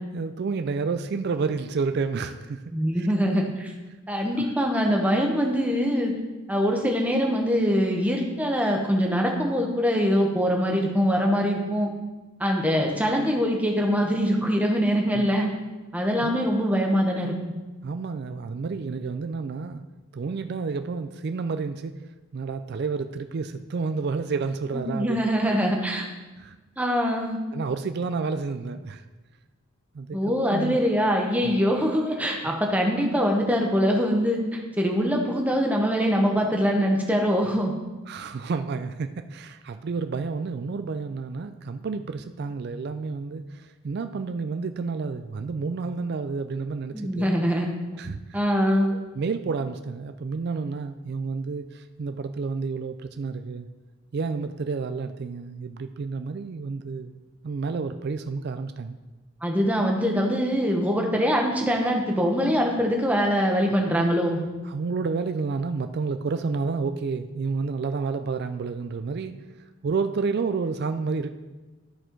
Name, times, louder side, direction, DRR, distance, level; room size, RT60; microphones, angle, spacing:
voice 1, 0.1-2.6 3.0-3.1 4.2-4.5 15.1-15.3 16.2-16.3 17.8-19.8 20.1-22.1 22.3-25.6 26.4-26.6 27.5-29.0 29.9-30.2 30.4-30.8 31.4-31.5 38.1-47.3 48.0-48.2 48.9-53.7 54.1-57.2 57.4-59.0 64.7-69.3 69.8-71.3, right 4 dB, 45° right, 9 dB, 0.3 m, -30 dB
voice 2, 2.7-3.7 4.1-6.1 6.5-11.9 12.4-15.5 15.9-17.5 24.7-26.1 26.8-27.4 30.1-37.7 46.9-47.7 48.3-48.9 59.4-64.4, equal, 5° right, 0 dB, 1.0 m, -23 dB
12.5 x 4.3 x 4.5 m, 1.2 s
head